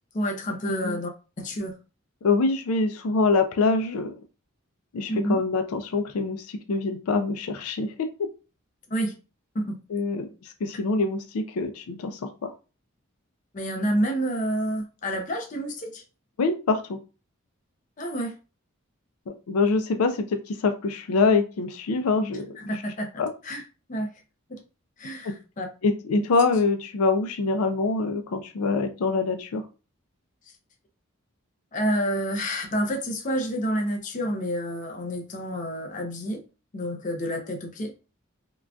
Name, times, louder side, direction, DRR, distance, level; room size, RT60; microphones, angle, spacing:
voice 1, 0.1-1.1 1.4-1.8 5.1-5.4 8.9-9.2 9.5-9.8 13.5-16.0 18.0-18.4 22.6-23.6 23.9-24.1 24.5-24.6 25.0-25.7 31.7-36.4 36.7-37.9, equal, 35° left, 0.5 m, -29 dB
voice 2, 0.7-1.0 2.2-4.1 4.9-8.1 9.9-10.3 10.6-12.5 16.4-17.0 19.3-22.6 23.2-23.3 25.2-25.3 25.8-29.6, left 3 dB, 90° left, 0.4 m, -25 dB
3.7 x 2.3 x 2.3 m
head